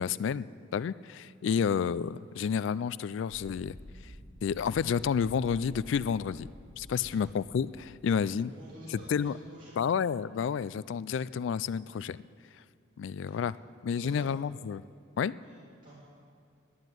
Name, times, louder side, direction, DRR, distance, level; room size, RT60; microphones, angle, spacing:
voice 1, 0.0-3.8 4.0-4.1 4.4-6.5 6.8-8.5 8.9-9.3 9.8-12.3 13.0-13.5 13.8-14.8 15.2-15.4, left 7 dB, 65° left, 19 dB, 0.3 m, -30 dB
sound 1, 3.3-8.3, left 1 dB, 70° right, 3.8 m, -50 dB
voice 2, 8.0-9.8 13.3-13.4 13.9-14.2 15.4-15.9, right 1 dB, 40° right, -10 dB, 3.3 m, -50 dB
11.0 x 9.8 x 9.1 m, 2.3 s
head